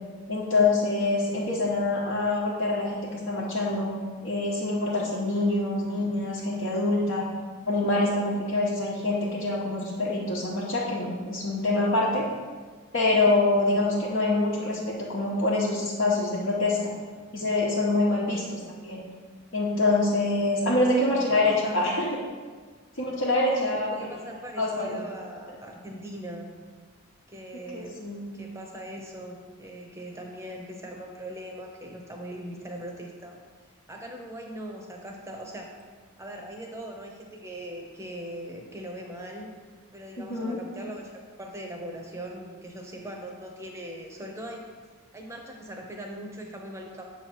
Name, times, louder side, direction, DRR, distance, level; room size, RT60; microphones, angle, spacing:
voice 1, 0.3-7.2 7.7-12.2 12.9-16.9 17.3-19.0 19.5-22.1 23.0-23.9 24.6-25.0 27.5-28.2 40.2-40.6, left 2 dB, 65° left, -7 dB, 1.0 m, -25 dB
voice 2, 20.6-22.0 23.6-26.5 27.3-27.9 28.3-33.4 33.9-35.7 36.2-39.5 39.9-41.1 41.4-44.7 45.1-47.0, equal, 15° right, 1 dB, 0.7 m, -40 dB
7.5 x 3.0 x 6.2 m, 1.5 s
head